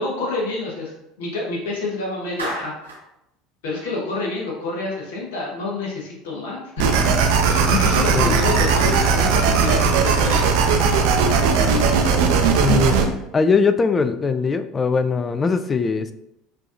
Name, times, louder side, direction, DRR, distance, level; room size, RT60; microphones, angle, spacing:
voice 1, 0.0-2.7 3.6-6.9 7.4-10.5, left 3 dB, 65° left, -3 dB, 1.0 m, -28 dB
Clapping, 2.4-3.1, right 2 dB, 85° right, 0.9 m, -31 dB
sound 1, 6.8-13.0, right 5 dB, 60° right, 0.5 m, -18 dB
voice 2, 12.6-13.0 13.3-16.1, left 5 dB, 25° left, 10 dB, 0.3 m, -20 dB
5.6 x 2.8 x 2.5 m, 0.86 s
figure-of-eight pair, 70°, 0 cm